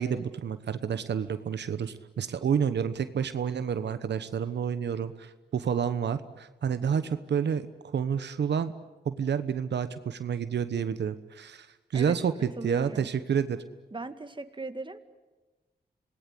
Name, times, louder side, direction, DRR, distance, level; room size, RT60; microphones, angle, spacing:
voice 1, 0.0-8.7 9.0-11.7 11.9-12.3 12.6-13.6, right 7 dB, 85° right, 11 dB, 1.0 m, -29 dB
voice 2, 12.6-13.1 13.9-15.0, right 3 dB, 30° right, 9 dB, 1.9 m, -37 dB
27.0 x 19.5 x 9.8 m, 1.2 s
cardioid pair, 65°, 17 cm